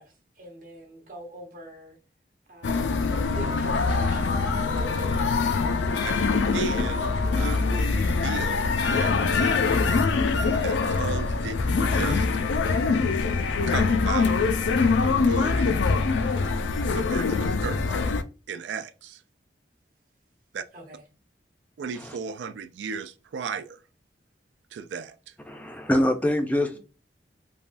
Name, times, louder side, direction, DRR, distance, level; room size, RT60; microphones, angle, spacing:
voice 1, 0.0-2.0 2.5-3.0 3.3-4.4 4.7-5.6 5.8-6.3 20.7-21.0 26.7-26.8, right 1 dB, 50° right, 0.8 m, -45 dB
sound 1, 2.6-18.2, left 4 dB, 90° left, 0.4 m, -24 dB
voice 2, 6.5-7.1 7.3-9.8 10.6-12.3 13.7-14.4 15.3-15.8 16.9-17.8 18.5-19.2 20.5-20.6 21.8-23.8 24.7-25.2, right 5 dB, 80° right, 0.3 m, -35 dB
voice 3, 25.5-26.8, left 1 dB, 10° left, 0.4 m, -24 dB
3.3 x 2.2 x 2.5 m
head